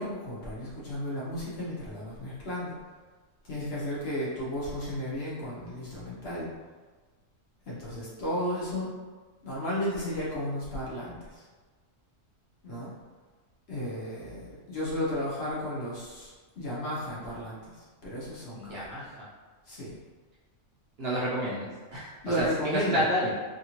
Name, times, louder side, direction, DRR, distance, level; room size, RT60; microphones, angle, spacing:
voice 1, 0.0-2.7 3.5-6.5 7.6-8.9 9.4-11.4 12.6-12.9 13.7-18.9 19.7-20.0 22.2-23.1, left 1 dB, 55° left, -7 dB, 0.8 m, -34 dB
voice 2, 18.6-19.3 21.0-22.1 22.4-23.3, equal, 55° right, -7 dB, 0.8 m, -30 dB
2.8 x 2.4 x 2.8 m, 1.4 s
omnidirectional pair, 1.4 m